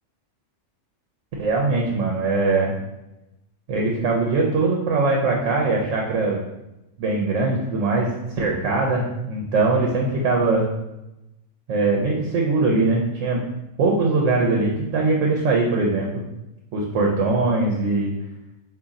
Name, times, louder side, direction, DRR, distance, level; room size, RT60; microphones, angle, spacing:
voice 1, 1.4-2.7 3.7-6.4 7.0-8.1 8.4-10.7 11.7-13.4 13.8-16.3 16.7-18.1, right 3 dB, 80° right, 0 dB, 1.0 m, -21 dB
3.6 x 2.6 x 4.0 m, 0.93 s
omnidirectional pair, 1.3 m